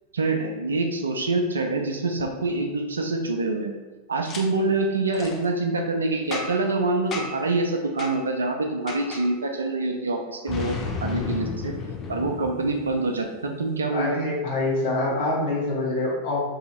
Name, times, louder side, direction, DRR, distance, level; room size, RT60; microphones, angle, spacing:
voice 1, 0.1-3.7 4.1-11.8 12.1-14.3, right 2 dB, 75° right, 3 dB, 0.5 m, -26 dB
Boom, 4.2-4.4 5.1-5.4 6.3-6.7 7.1-7.5 8.0-8.2 8.9-9.3 10.5-13.2, left 4 dB, 30° left, 0.6 m, -32 dB
voice 2, 13.9-16.4, left 2 dB, 60° left, -6 dB, 1.4 m, -25 dB
2.8 x 2.7 x 4.1 m, 1.3 s
figure-of-eight pair, 90°, 0 cm